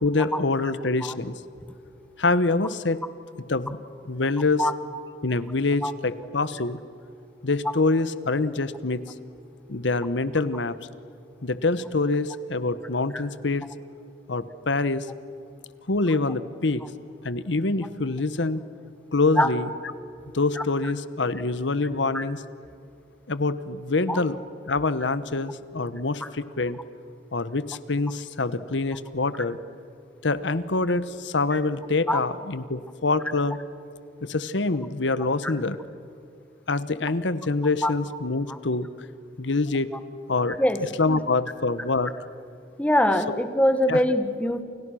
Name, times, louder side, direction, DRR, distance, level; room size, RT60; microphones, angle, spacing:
voice 1, 0.0-1.3 2.2-3.0 3.5-3.8 4.1-4.6 5.2-6.8 7.4-9.0 9.7-10.8 11.4-13.6 14.3-15.1 15.9-16.8 17.2-18.6 19.1-19.7 20.3-22.4 23.3-24.3 24.7-26.8 27.3-29.6 30.2-33.6 34.2-35.8 36.7-38.9 39.4-39.9 40.3-40.6 41.0-42.1 43.3-43.4 43.9-44.0, left 3 dB, 70° left, 15 dB, 1.1 m, -25 dB
voice 2, 42.8-44.6, left 1 dB, 10° left, 9 dB, 1.7 m, -23 dB
30.0 x 28.5 x 6.3 m, 2.5 s
head